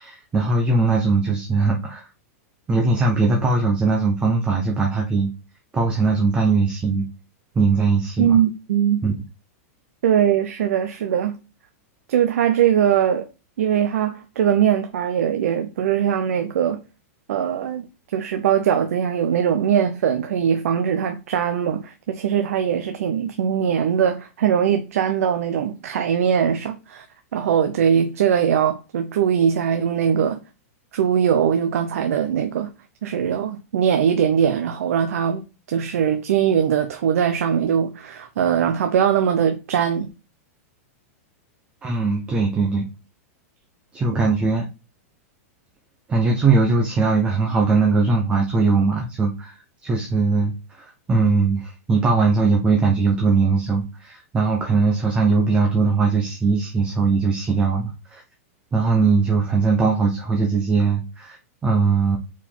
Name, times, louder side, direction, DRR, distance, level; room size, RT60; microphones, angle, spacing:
voice 1, 0.0-2.1 2.7-5.3 5.7-7.1 7.5-8.4 9.0-9.1 41.8-42.9 43.9-44.6 46.1-49.5 49.8-58.2 58.7-61.4 61.6-62.2, right 4 dB, 15° right, 0.9 m, -20 dB
voice 2, 8.2-9.0 10.0-11.3 12.1-13.3 13.6-16.8 17.3-17.9 18.1-27.0 27.3-30.4 30.9-32.7 33.0-35.4 35.7-40.1, right 8 dB, 70° right, 0.9 m, -21 dB
4.8 x 4.6 x 5.6 m
supercardioid pair, 165°, 8 cm